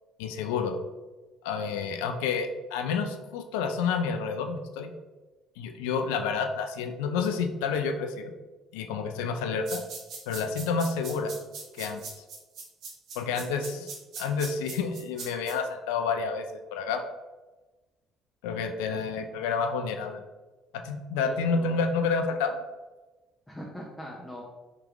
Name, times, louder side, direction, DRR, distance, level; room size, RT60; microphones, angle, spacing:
voice 1, 0.2-0.8 1.4-4.9 5.6-8.3 8.7-9.8 10.3-11.3 11.8-12.0 13.2-17.0 18.4-20.2 20.7-22.6, left 5 dB, 85° left, 6 dB, 0.4 m, -29 dB
sound 1, 9.7-15.5, right 4 dB, 70° right, 1.0 m, -40 dB
voice 2, 13.3-13.9 18.9-19.3 21.1-21.8 23.5-24.4, left 1 dB, 10° left, -3 dB, 0.8 m, -42 dB
3.6 x 3.0 x 3.5 m, 1.2 s
hypercardioid pair, 65°, 0 cm